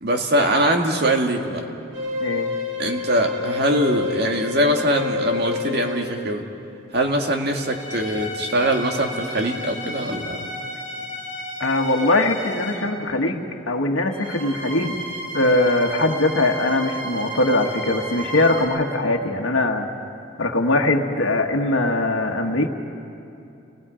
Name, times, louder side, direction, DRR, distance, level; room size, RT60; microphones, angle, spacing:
voice 1, 0.0-1.6 2.8-6.4 6.9-10.5, right 1 dB, 55° right, 2 dB, 1.9 m, -22 dB
sound 1, 1.9-6.3 7.4-12.9 14.1-18.7, left 2 dB, 85° right, 7.6 m, -31 dB
voice 2, 2.2-2.5 11.6-15.0 15.3-19.9 20.4-22.7, left 2 dB, 85° left, 1 dB, 1.5 m, -21 dB
30.0 x 20.0 x 5.0 m, 2.7 s
head